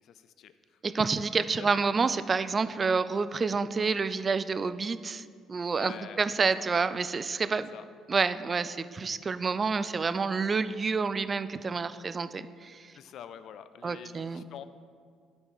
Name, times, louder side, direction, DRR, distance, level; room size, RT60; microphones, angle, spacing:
voice 1, 0.0-1.0 1.6-1.7 5.7-6.3 6.6-6.7 7.7-7.8 12.9-14.6, left 9 dB, 70° left, 12 dB, 0.4 m, -46 dB
voice 2, 0.8-7.7 8.1-12.9 13.8-14.4, right 4 dB, 35° right, 13 dB, 0.4 m, -29 dB
12.0 x 4.2 x 4.9 m, 2.1 s
supercardioid pair, 70°, 0 cm